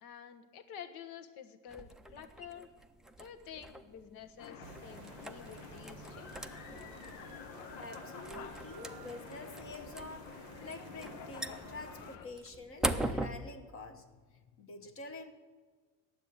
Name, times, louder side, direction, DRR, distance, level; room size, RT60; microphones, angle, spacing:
voice 1, 0.0-2.7 3.2-6.3, left 8 dB, 70° left, 7 dB, 1.3 m, -50 dB
sound 1, 1.7-13.3, right 1 dB, ahead, 0.4 m, -42 dB
sound 2, 4.4-12.3, left 7 dB, 90° left, 1.1 m, -49 dB
sound 3, 4.6-12.2, right 9 dB, 55° right, 0.7 m, -54 dB
voice 2, 7.7-10.3 10.6-14.1 14.6-15.3, left 3 dB, 35° left, 6 dB, 1.1 m, -47 dB
9.9 x 7.6 x 9.6 m, 1.4 s
cardioid pair, 135°, 35 cm